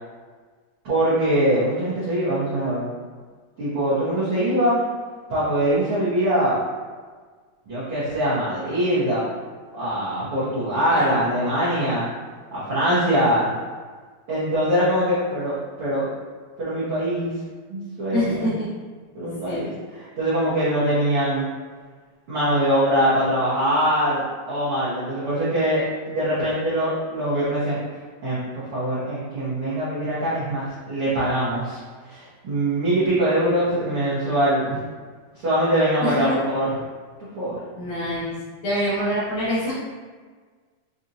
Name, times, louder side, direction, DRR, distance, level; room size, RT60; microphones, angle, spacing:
voice 1, 0.8-2.9 3.6-4.8 5.3-6.6 7.7-9.2 9.7-12.1 12.5-13.5 14.3-16.1 16.6-17.3 17.7-18.5 19.1-21.4 22.3-27.8 28.2-34.8 35.3-36.7 37.2-37.6, right 1 dB, 60° right, -12 dB, 1.5 m, -23 dB
voice 2, 18.1-18.7 19.3-19.6 33.5-33.8 36.0-36.4 37.8-38.3 38.6-39.7, left 1 dB, 70° left, -11 dB, 2.2 m, -26 dB
5.8 x 2.6 x 2.7 m, 1.5 s
omnidirectional pair, 3.9 m